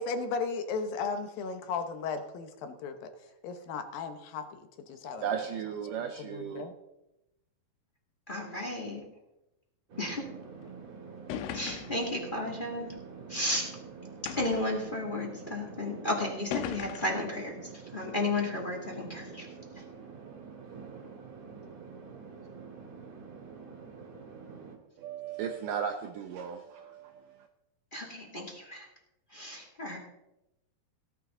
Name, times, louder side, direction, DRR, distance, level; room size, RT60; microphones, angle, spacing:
voice 1, 0.0-5.2 6.2-6.7, left 4 dB, 70° left, 2.6 m, -36 dB
voice 2, 5.1-6.7 25.0-27.5, right 8 dB, 80° right, 1.9 m, -36 dB
voice 3, 8.3-9.0 10.0-10.2 11.5-12.9 13.3-13.7 14.4-19.5 19.7-19.8 27.9-28.9 29.3-30.0, left 2 dB, 20° left, 1.5 m, -33 dB
sound 1, 9.9-24.8, right 5 dB, 45° right, 2.9 m, -47 dB
sound 2, 10.7-10.8 11.3-12.1 13.0-13.1 14.3-14.8 15.7-15.8 16.5-17.3, left 10 dB, 85° left, 2.8 m, -38 dB
17.5 x 11.5 x 3.8 m
omnidirectional pair, 4.7 m